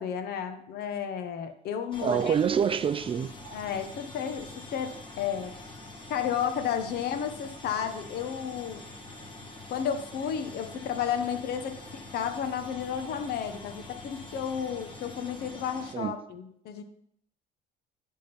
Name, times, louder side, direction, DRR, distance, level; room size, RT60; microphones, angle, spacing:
voice 1, 0.0-2.3 3.5-5.5 6.1-8.8 9.7-16.8, left 8 dB, 70° left, 1.0 m, -32 dB
sound 1, 1.9-15.9, left 2 dB, 30° left, 1.4 m, -45 dB
voice 2, 2.0-3.6 15.9-16.1, right 7 dB, 30° right, 0.4 m, -27 dB
10.5 x 3.8 x 5.9 m
cardioid pair, 110°, 17 cm